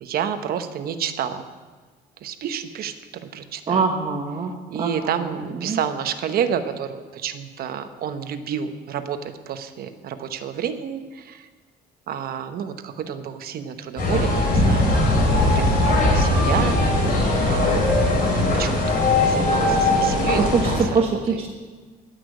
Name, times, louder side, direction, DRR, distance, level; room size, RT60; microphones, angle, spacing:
voice 1, 0.0-1.5 2.2-2.9 3.2-3.8 4.7-9.2 9.5-11.5 12.1-17.9 18.2-21.0 21.3-21.4, right 8 dB, 65° right, 9 dB, 1.0 m, -30 dB
voice 2, 3.7-5.8 20.3-21.5, right 5 dB, 35° right, 0 dB, 1.2 m, -24 dB
sound 1, 14.0-20.8, left 2 dB, 55° left, 4.5 m, -19 dB
14.0 x 6.0 x 9.2 m, 1.4 s
cardioid pair, 110°, 17 cm